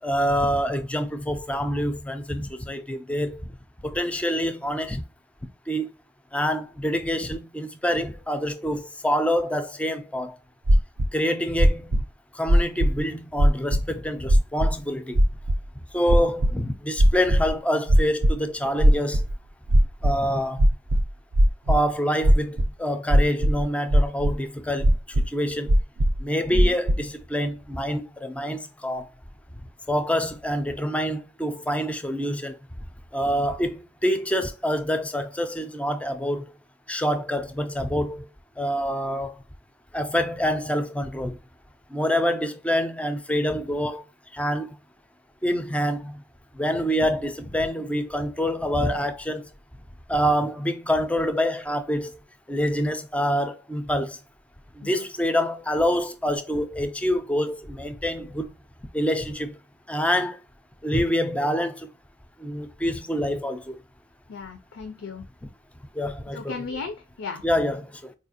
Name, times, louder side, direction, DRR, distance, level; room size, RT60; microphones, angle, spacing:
voice 1, 0.0-3.5 3.8-5.0 5.7-5.9 6.3-10.4 11.1-12.0 12.3-15.2 15.9-19.3 20.0-20.6 21.7-25.8 26.2-29.1 29.9-32.6 33.1-36.6 36.9-38.3 38.6-39.3 39.9-41.4 41.9-44.0 44.3-44.8 45.4-46.2 46.5-49.5 50.1-52.2 52.5-54.2 54.8-58.5 58.9-59.6 59.9-60.4 60.8-61.9 62.4-63.8 65.9-66.8 67.4-68.1, equal, 5° left, 0.3 m, -26 dB
sound 1, 10.7-11.1 11.6-12.0 12.5-13.0 13.4-13.8 14.3-14.7 15.2-15.6 16.1-16.5 17.0-17.5 17.9-18.3 18.8-19.3 19.7-20.1 20.6-21.8 22.2-22.7 23.1-23.6 23.9-24.4 24.8-25.3 25.7-26.2 26.5-27.0, equal, 80° right, 0.5 m, -18 dB
voice 2, 64.3-65.2 66.3-67.4, left 4 dB, 90° left, 0.5 m, -36 dB
4.1 x 2.4 x 2.6 m
head